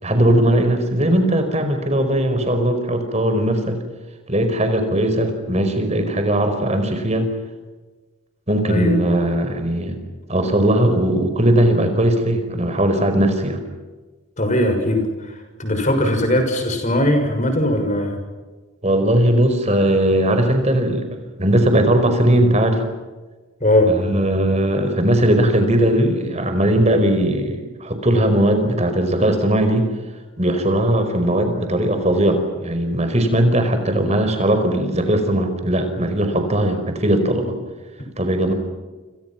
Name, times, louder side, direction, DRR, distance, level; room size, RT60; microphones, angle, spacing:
voice 1, 0.0-3.8 4.3-7.3 8.5-10.0 10.3-13.6 18.8-21.1 21.4-22.8 23.9-29.9 30.4-37.5 38.2-38.5, right 1 dB, 30° right, 6 dB, 5.1 m, -18 dB
voice 2, 14.4-18.2 23.6-23.9, left 1 dB, 35° left, 5 dB, 6.4 m, -19 dB
28.5 x 28.5 x 6.0 m, 1.3 s
head